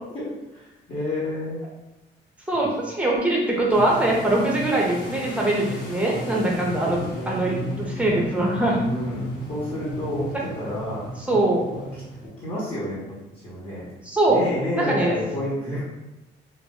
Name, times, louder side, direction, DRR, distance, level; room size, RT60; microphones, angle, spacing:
voice 1, 0.1-1.7 6.1-7.3 8.8-11.1 11.7-12.0 12.4-13.0 13.4-13.9 14.3-15.9, left 1 dB, 35° left, -9 dB, 1.1 m, -30 dB
voice 2, 2.5-8.8 11.3-11.7 14.1-14.4 14.8-15.1, right 1 dB, 5° right, -3 dB, 0.7 m, -22 dB
sound 1, 3.7-12.3, right 1 dB, 65° left, 1.0 m, -35 dB
2.1 x 2.0 x 3.5 m, 0.98 s
cardioid pair, 90°, 20 cm